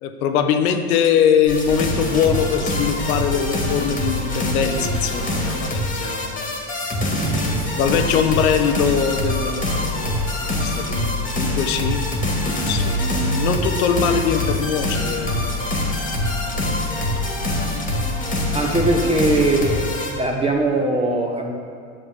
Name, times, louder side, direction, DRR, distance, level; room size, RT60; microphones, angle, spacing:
voice 1, 0.0-6.6 7.8-12.0 12.6-15.7 16.4-17.0, left 7 dB, 80° left, 7 dB, 0.9 m, -22 dB
sound 1, 1.5-20.1, left 1 dB, 20° left, 1.9 m, -24 dB
voice 2, 18.5-19.7 20.1-21.5, right 2 dB, 15° right, 1 dB, 1.2 m, -20 dB
9.9 x 7.1 x 3.6 m, 2.3 s
supercardioid pair, 100°, 43 cm